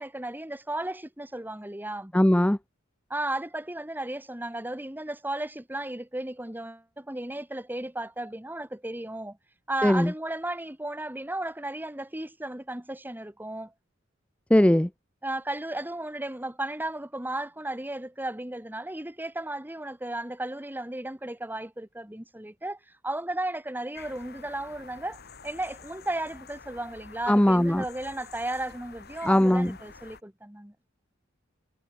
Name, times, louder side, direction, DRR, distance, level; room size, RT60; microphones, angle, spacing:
voice 1, 0.0-2.2 3.1-9.4 9.7-13.7 15.2-30.7, right 1 dB, 10° right, 1.8 m, -34 dB
voice 2, 2.1-2.6 9.8-10.1 14.5-14.9 27.3-27.8 29.3-29.7, left 1 dB, 5° left, 0.5 m, -20 dB
sound 1, 23.9-30.2, left 5 dB, 55° left, 3.2 m, -48 dB
head